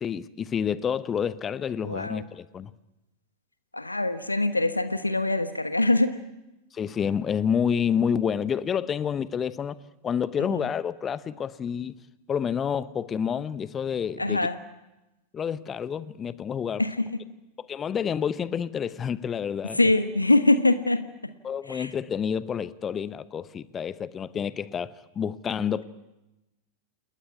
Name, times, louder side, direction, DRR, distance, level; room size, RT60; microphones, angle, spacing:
voice 1, 0.0-2.7 6.7-12.0 12.3-14.5 15.3-16.8 17.7-19.8 21.4-25.8, left 7 dB, 25° left, 0.9 m, -29 dB
voice 2, 1.8-2.3 3.7-6.1 10.5-10.7 14.2-14.6 16.8-17.0 19.7-21.0 21.7-21.9, left 2 dB, 85° left, 1.3 m, -23 dB
29.0 x 20.0 x 9.4 m
figure-of-eight pair, 90°, 0 cm